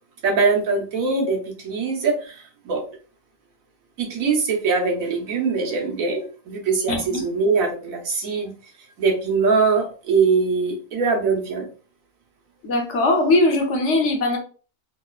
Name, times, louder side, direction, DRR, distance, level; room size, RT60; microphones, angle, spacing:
voice 1, 0.2-2.8 4.0-11.7, right 4 dB, 90° right, 0 dB, 1.4 m, -22 dB
voice 2, 6.9-7.2 12.6-14.4, left 2 dB, 60° left, 2 dB, 1.1 m, -20 dB
3.9 x 2.9 x 2.3 m, 0.38 s
omnidirectional pair, 1.4 m